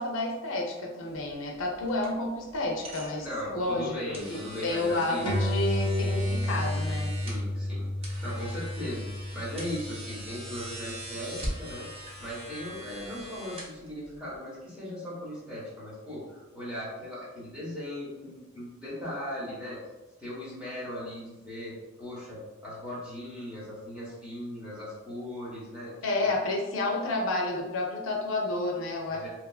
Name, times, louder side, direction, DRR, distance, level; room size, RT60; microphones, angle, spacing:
voice 1, 0.0-3.3 3.5-7.1 26.0-29.3, left 2 dB, 75° left, 0 dB, 0.5 m, -30 dB
sound 1, 1.1-14.4, right 1 dB, 30° right, 0.5 m, -43 dB
voice 2, 3.2-5.3 7.2-11.9 12.2-19.8 20.2-25.9 26.2-26.3 29.1-29.3, left 1 dB, 5° right, -8 dB, 1.0 m, -38 dB
sound 2, 5.3-12.1, left 1 dB, 25° left, 0.4 m, -32 dB
2.8 x 2.4 x 2.3 m, 1.1 s
head